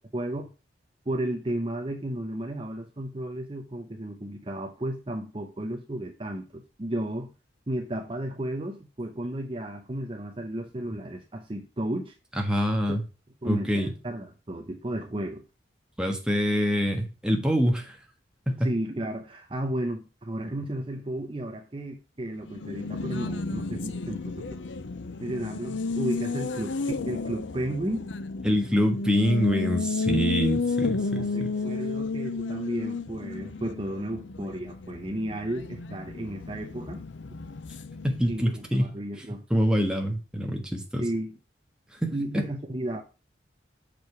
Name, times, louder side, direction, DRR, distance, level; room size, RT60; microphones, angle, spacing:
voice 1, 0.1-0.5 1.1-7.3 7.7-12.1 12.9-13.0 13.4-15.4 18.6-24.6 25.2-28.1 31.1-37.0 38.3-39.4 41.0-41.3 42.1-43.0, right 1 dB, 30° right, 0.8 m, -33 dB
voice 2, 12.4-13.0 13.4-13.9 16.0-18.0 18.5-18.7 28.4-31.6 38.0-39.0 39.5-41.1 42.0-42.4, equal, 5° right, 1.4 m, -25 dB
Race car auto racing, 22.4-38.7, left 4 dB, 90° left, 0.6 m, -32 dB
6.6 x 5.0 x 4.6 m
head